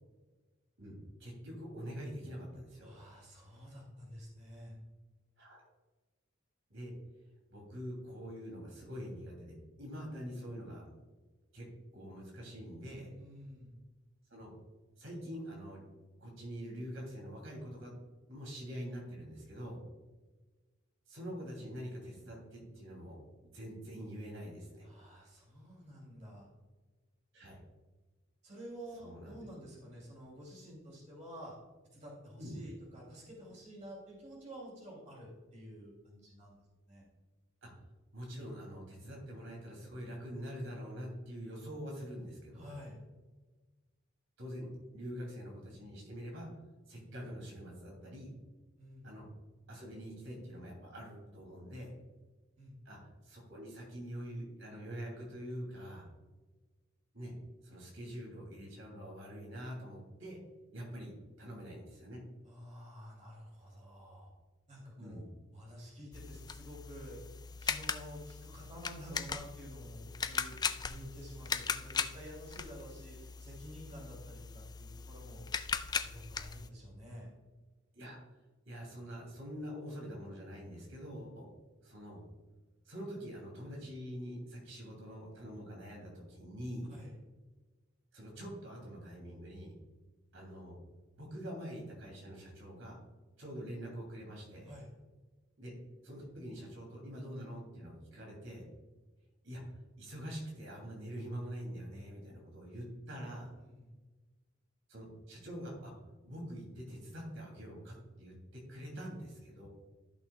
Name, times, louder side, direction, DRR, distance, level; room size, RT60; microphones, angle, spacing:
voice 1, 0.8-2.9 5.4-5.6 6.7-6.9 7.5-10.9 11.5-11.7 11.9-13.1 14.3-14.5 15.0-15.9 16.2-17.9 18.3-19.8 21.1-23.2 23.5-24.9 27.3-27.6 29.0-29.4 32.4-32.6 37.6-37.7 38.1-42.7 44.4-46.5 46.9-48.3 49.0-49.3 49.7-51.9 52.8-56.1 57.1-57.3 57.6-60.4 60.7-62.2 65.0-65.3 77.9-78.2 78.6-81.5 81.8-82.2 82.9-86.9 88.1-89.7 90.3-90.8 91.2-93.0 93.4-94.7 95.6-95.7 96.0-98.6 99.4-103.5 104.9-105.9 106.2-109.7, equal, 70° right, -2 dB, 2.8 m, -45 dB
voice 2, 2.8-4.8 13.2-13.8 24.8-26.5 28.4-31.5 31.9-36.5 36.9-37.0 42.5-43.0 48.8-49.2 52.6-52.7 62.4-64.3 64.7-65.2 65.5-67.2 67.6-75.6 75.9-77.3 86.9-87.1 94.6-94.9 103.6-103.9, equal, 35° right, -3 dB, 2.8 m, -50 dB
sound 1, 66.1-76.7, left 6 dB, 20° left, 0.3 m, -39 dB
13.5 x 6.2 x 2.3 m, 1.3 s
head